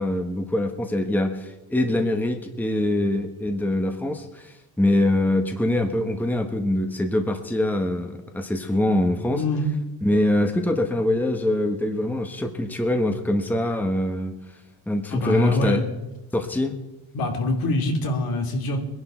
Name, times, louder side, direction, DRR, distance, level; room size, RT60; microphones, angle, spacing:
voice 1, 0.0-9.4 10.0-14.4 14.9-15.8 16.3-16.7, left 1 dB, 5° left, 5 dB, 1.2 m, -24 dB
voice 2, 9.3-9.7 15.1-15.8 17.1-18.8, left 2 dB, 65° left, 2 dB, 3.0 m, -24 dB
21.5 x 11.0 x 4.5 m, 1.0 s
cardioid pair, 135°, 38 cm